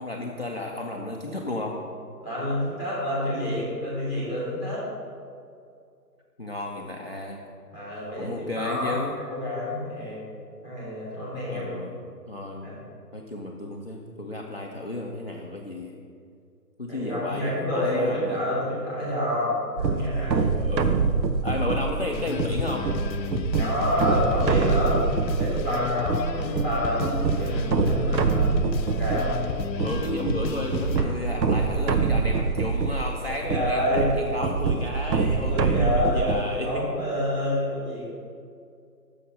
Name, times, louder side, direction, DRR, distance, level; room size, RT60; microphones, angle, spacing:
voice 1, 0.0-1.8 6.4-7.4 8.2-9.2 11.5-12.0 12.3-12.7 13.1-16.0 16.8-18.4 20.6-21.0 21.4-22.9 29.8-36.7, left 2 dB, 40° left, -2 dB, 0.5 m, -33 dB
voice 2, 2.2-4.9 7.7-9.0 9.3-10.2 10.6-11.7 12.6-12.8 16.9-20.5 23.6-25.0 25.4-28.5 28.9-29.4 33.3-34.1 35.5-38.1, left 1 dB, 10° right, -8 dB, 2.0 m, -28 dB
sound 1, 19.8-36.4, right 4 dB, 90° right, 0.7 m, -25 dB
sound 2, 22.1-31.0, left 7 dB, 80° left, 0.6 m, -33 dB
sound 3, 24.6-24.9 25.5-25.7 26.4-26.7 28.1-28.9 31.0-31.3 31.8-31.9 33.5-34.2, right 1 dB, 70° right, 1.5 m, -41 dB
6.5 x 5.6 x 5.5 m, 2.3 s
hypercardioid pair, 160°, 50 cm